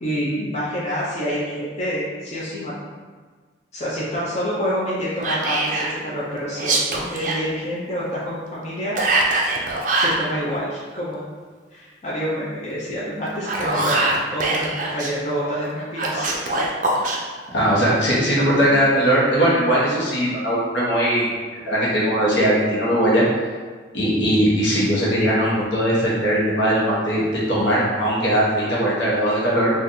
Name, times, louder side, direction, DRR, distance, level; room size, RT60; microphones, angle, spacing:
voice 1, 0.0-2.7 3.7-9.0 9.9-11.3 11.7-16.4, equal, 35° left, -7 dB, 0.5 m, -27 dB
Whispering, 5.2-5.9 6.5-7.4 9.0-10.2 13.3-15.1 16.0-17.2, right 2 dB, 45° right, 0.4 m, -22 dB
voice 2, 17.5-23.2 23.9-29.7, equal, 75° left, -6 dB, 1.0 m, -19 dB
3.8 x 2.4 x 2.7 m, 1.5 s
head